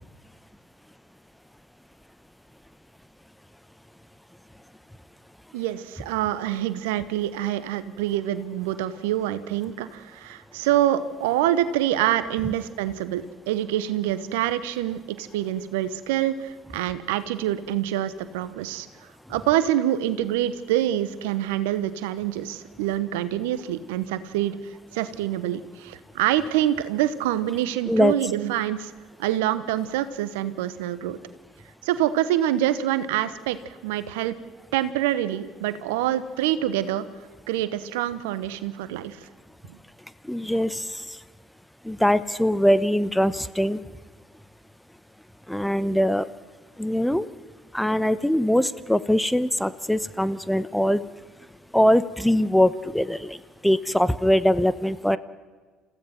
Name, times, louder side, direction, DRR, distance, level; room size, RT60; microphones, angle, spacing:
voice 1, 5.5-18.9 19.3-28.9 29.2-31.2 31.8-34.3 34.7-37.0 37.5-39.3 39.7-39.8, right 12 dB, 75° right, 14 dB, 1.0 m, -26 dB
voice 2, 40.3-41.0 41.8-43.8 45.5-46.3 46.8-47.3 47.7-51.0 51.7-53.4 53.6-55.2, equal, 5° left, 15 dB, 0.9 m, -22 dB
29.0 x 15.5 x 5.9 m, 1.4 s
hypercardioid pair, 55°, 0 cm